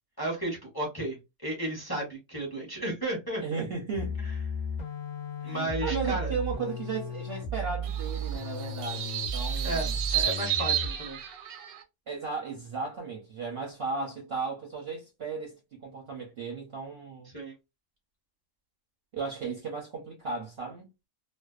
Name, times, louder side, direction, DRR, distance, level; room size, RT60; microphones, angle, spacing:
voice 1, 0.2-3.6 4.2-4.3 5.4-6.3 9.6-11.2 17.2-17.5, right 1 dB, 20° left, 0.8 m, -34 dB
voice 2, 3.4-4.2 5.4-10.0 12.1-17.3 19.1-20.9, right 4 dB, 55° right, 0.7 m, -35 dB
sound 1, 3.9-11.1, right 1 dB, 80° left, 0.4 m, -34 dB
sound 2, 7.8-11.8, right 10 dB, 80° right, 1.1 m, -32 dB
2.5 x 2.2 x 2.3 m
omnidirectional pair, 1.5 m